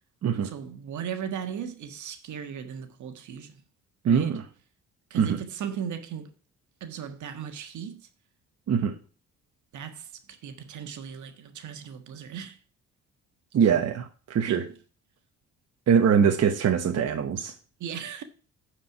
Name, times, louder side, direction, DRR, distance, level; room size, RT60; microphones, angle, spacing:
voice 1, 0.4-3.6 4.0-4.4 5.1-6.3 6.8-8.1 9.7-12.6 14.5-14.7 17.8-18.2, right 8 dB, 75° right, 1.6 m, -37 dB
voice 2, 4.0-4.4 5.1-5.4 8.7-9.0 13.5-14.6 15.9-17.5, right 7 dB, 55° right, 1.1 m, -23 dB
9.4 x 4.9 x 5.8 m
cardioid pair, 90°, 30 cm